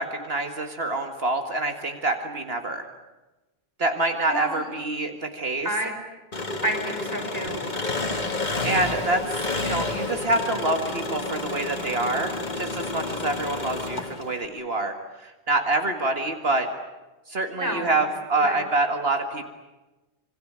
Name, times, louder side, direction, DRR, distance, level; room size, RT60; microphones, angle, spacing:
voice 1, 0.0-2.8 3.8-5.7 8.6-16.7 17.3-19.5, right 2 dB, 75° right, 5 dB, 2.2 m, -26 dB
voice 2, 4.3-4.6 5.6-5.9 6.6-7.6 17.5-18.0 18.4-18.6, equal, 15° right, 3 dB, 5.6 m, -29 dB
Engine, 6.3-14.4, left 2 dB, 45° left, 2.0 m, -30 dB
27.0 x 24.5 x 8.8 m, 1.1 s
omnidirectional pair, 1.0 m